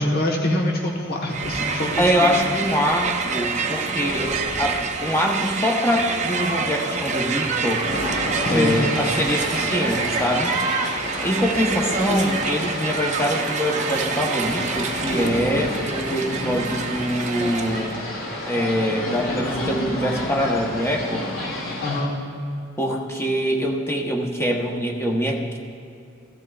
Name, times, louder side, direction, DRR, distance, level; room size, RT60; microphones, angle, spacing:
voice 1, 0.0-2.4 8.4-8.8 21.8-22.1, left 1 dB, 50° left, -1 dB, 1.3 m, -25 dB
Crowd, 1.3-18.0, right 4 dB, 35° right, 0.6 m, -27 dB
voice 2, 2.0-7.9 8.5-10.6 11.2-18.0 18.5-21.3 22.8-25.6, equal, 15° left, 0 dB, 1.0 m, -24 dB
sound 1, 7.8-22.0, left 1 dB, 75° left, 3.0 m, -30 dB
15.0 x 13.0 x 2.4 m, 2.5 s
head